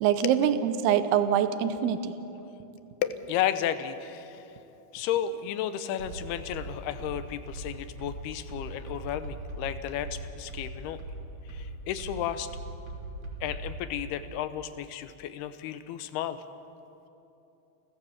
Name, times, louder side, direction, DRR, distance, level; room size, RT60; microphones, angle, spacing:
voice 1, 0.0-2.1, right 9 dB, 85° right, 11 dB, 2.8 m, -24 dB
voice 2, 3.0-4.5 4.9-11.0 11.5-12.5 13.4-16.4, left 10 dB, 80° left, 12 dB, 2.8 m, -33 dB
sound 1, 6.0-13.8, right 2 dB, 60° right, 4.2 m, -39 dB
29.0 x 14.5 x 7.2 m, 2.9 s
omnidirectional pair, 4.6 m